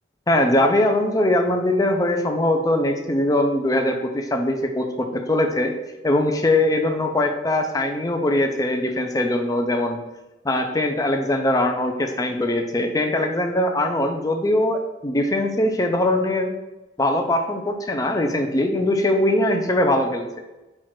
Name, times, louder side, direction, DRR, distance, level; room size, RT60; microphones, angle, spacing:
voice 1, 0.3-5.7 6.0-10.0 10.4-16.5 17.0-20.4, left 1 dB, 20° left, 4 dB, 0.4 m, -21 dB
4.5 x 2.5 x 4.3 m, 1.0 s
head